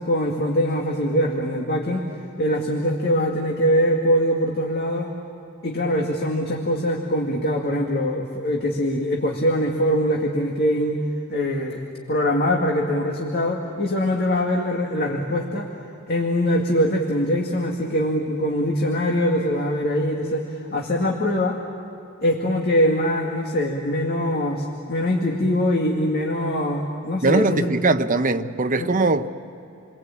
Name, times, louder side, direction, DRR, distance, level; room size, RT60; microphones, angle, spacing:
voice 1, 0.0-2.0 2.4-5.1 5.6-11.0 11.3-11.8 12.1-15.7 16.1-21.6 22.2-27.7 28.8-28.9, equal, 50° left, 2.1 m, -23 dB
voice 2, 27.2-29.3, right 3 dB, 40° right, 0.9 m, -20 dB
30.0 x 22.5 x 8.6 m
head